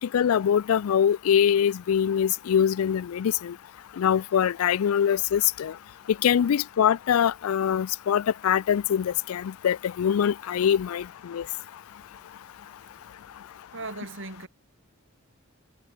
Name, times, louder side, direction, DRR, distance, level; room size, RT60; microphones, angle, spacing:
voice 1, 0.0-3.5 4.0-5.7 6.2-11.5, left 8 dB, 80° left, 0.4 m, -23 dB
voice 2, 13.7-14.5, right 3 dB, 60° right, 3.4 m, -37 dB
head